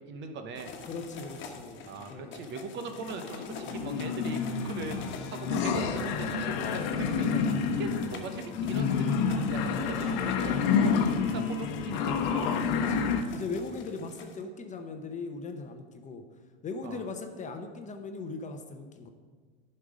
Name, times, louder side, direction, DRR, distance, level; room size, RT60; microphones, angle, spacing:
voice 1, 0.0-0.7 1.8-7.4 7.8-10.9 11.3-12.3 13.7-13.9 16.8-17.0, right 4 dB, 35° right, 7 dB, 1.0 m, -40 dB
sound 1, 0.5-14.4, left 5 dB, 40° left, 1.5 m, -47 dB
voice 2, 0.8-2.4 12.7-13.1 13.3-16.2 16.6-19.1, left 4 dB, 25° left, 5 dB, 0.9 m, -39 dB
sound 2, 3.0-13.2, left 6 dB, 55° left, 1.0 m, -29 dB
11.0 x 5.5 x 5.0 m, 1.5 s
hypercardioid pair, 100°, 30 cm